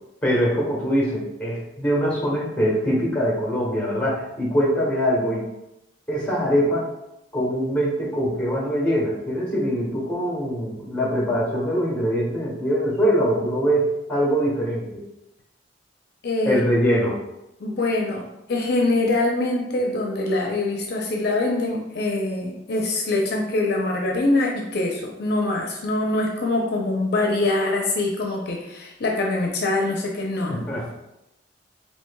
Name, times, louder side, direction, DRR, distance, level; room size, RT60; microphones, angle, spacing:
voice 1, 0.2-5.5 6.1-6.9 7.3-15.0 16.4-17.2 30.5-30.9, equal, 10° left, -5 dB, 1.1 m, -23 dB
voice 2, 16.2-16.6 17.6-18.2 18.5-30.8, left 2 dB, 60° left, 0 dB, 0.5 m, -24 dB
4.6 x 2.8 x 2.2 m, 0.87 s
head